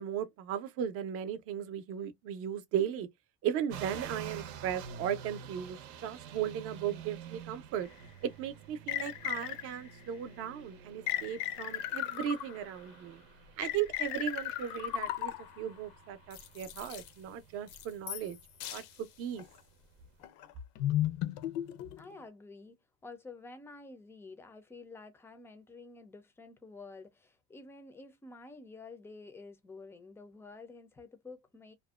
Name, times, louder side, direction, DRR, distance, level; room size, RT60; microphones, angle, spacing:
voice 1, 0.0-3.1 3.4-7.9 8.2-13.2 13.6-18.4 18.7-19.4, right 9 dB, 50° right, 0.6 m, -36 dB
sound 1, 3.7-20.2, right 7 dB, 90° right, 0.7 m, -49 dB
sound 2, 7.9-8.0 8.9-9.9 11.1-12.8 13.6-15.7 16.3-17.1 17.7-18.4 18.6-18.9 19.4-19.6 20.2-22.2, left 13 dB, 80° left, 0.5 m, -36 dB
voice 2, 22.0-22.8 23.0-31.7, left 3 dB, 10° left, 0.3 m, -50 dB
2.5 x 2.1 x 2.3 m
cardioid pair, 150°, 29 cm